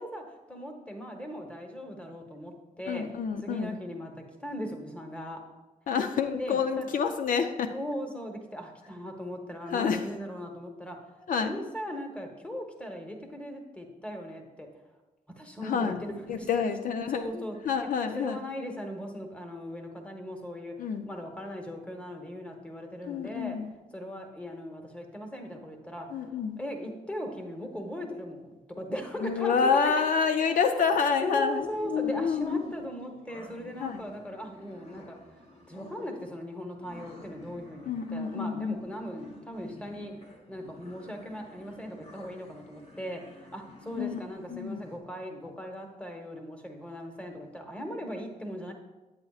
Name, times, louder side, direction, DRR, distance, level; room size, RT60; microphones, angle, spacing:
voice 1, 0.0-3.1 3.4-5.4 6.4-6.9 7.7-11.0 11.4-14.7 15.4-16.7 17.1-17.9 18.2-20.7 21.0-23.6 23.9-30.0 30.4-30.8 31.2-35.2 35.7-40.2 40.5-48.7, equal, 10° left, 3 dB, 1.1 m, -38 dB
voice 2, 2.9-3.8 5.9-7.7 9.7-10.0 11.3-11.5 15.6-16.0 16.3-18.4 20.8-21.0 23.0-23.7 26.1-26.6 29.2-32.6 33.8-34.0 37.9-38.8 44.0-44.2 44.5-44.8, left 6 dB, 70° left, 7 dB, 0.5 m, -28 dB
sound 1, 31.5-45.0, left 1 dB, 45° left, 1.4 m, -52 dB
8.7 x 8.1 x 2.4 m, 1.1 s
cardioid pair, 100°, 14 cm